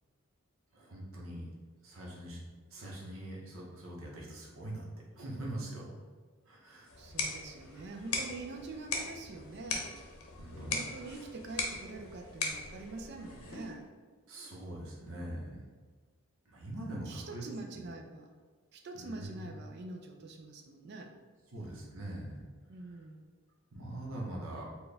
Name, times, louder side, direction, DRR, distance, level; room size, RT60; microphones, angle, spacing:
voice 1, 0.7-1.4 1.8-2.4 2.7-4.9 5.2-5.8 6.5-6.9 10.4-10.8 14.3-15.6 16.5-17.5 17.7-17.8 18.9-19.5 21.5-22.4 23.7-24.6, right 1 dB, 70° right, -3 dB, 0.9 m, -42 dB
sound 1, 6.9-13.8, left 3 dB, 80° left, 0.7 m, -39 dB
voice 2, 7.0-10.0 10.7-13.9 16.9-18.3 18.7-21.1 22.7-23.2, right 3 dB, 50° right, 3 dB, 0.3 m, -45 dB
4.3 x 2.3 x 3.3 m, 1.5 s
head